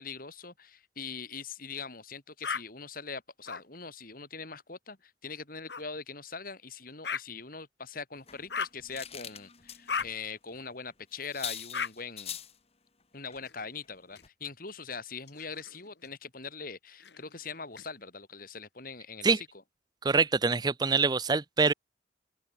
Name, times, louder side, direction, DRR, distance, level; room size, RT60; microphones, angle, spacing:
voice 1, 0.0-12.4 13.1-19.5, left 5 dB, 50° left, 3.6 m, -42 dB
sound 1, 2.4-2.6 3.5-3.6 5.7-5.8 7.0-7.2 8.5-8.8 9.9-10.1 11.7-11.9 13.4-14.2 15.2-16.1 17.0-17.9, left 6 dB, 70° left, 1.7 m, -36 dB
sound 2, 8.2-10.1 10.5-10.6 10.9-11.0 11.2-12.6 13.3-13.5 13.8-14.0 14.2-14.3, left 9 dB, 35° left, 1.8 m, -43 dB
voice 2, 20.0-21.7, right 4 dB, 25° right, 0.5 m, -25 dB
open air
head